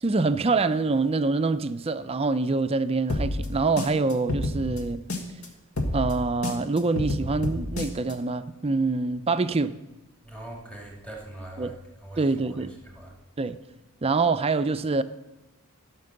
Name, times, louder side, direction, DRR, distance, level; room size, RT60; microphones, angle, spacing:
voice 1, 0.0-5.0 5.9-9.7 11.6-11.7 12.2-12.7 13.4-13.6 14.0-15.0, right 3 dB, 25° right, 0.4 m, -25 dB
sound 1, 3.1-5.5 5.8-8.1, left 1 dB, 80° left, 1.7 m, -29 dB
voice 2, 10.2-11.7 12.0-12.6 12.8-13.1, right 1 dB, 5° left, 2.2 m, -42 dB
13.5 x 5.9 x 6.6 m
head